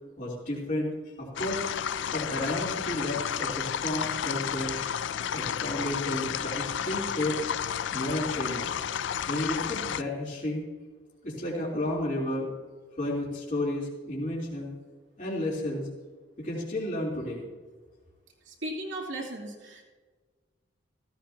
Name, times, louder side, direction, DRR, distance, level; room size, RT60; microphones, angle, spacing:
voice 1, 0.2-0.9 1.2-1.6 2.1-4.7 5.3-7.4 7.9-8.7 9.3-10.7 11.2-12.5 13.0-14.7 15.2-15.8 16.4-17.4, left 1 dB, 40° left, -5 dB, 3.4 m, -32 dB
sound 1, 1.4-10.0, left 8 dB, 70° left, 0.4 m, -32 dB
voice 2, 18.4-19.8, right 1 dB, 70° right, -1 dB, 3.0 m, -37 dB
16.5 x 15.0 x 2.8 m, 1.4 s
head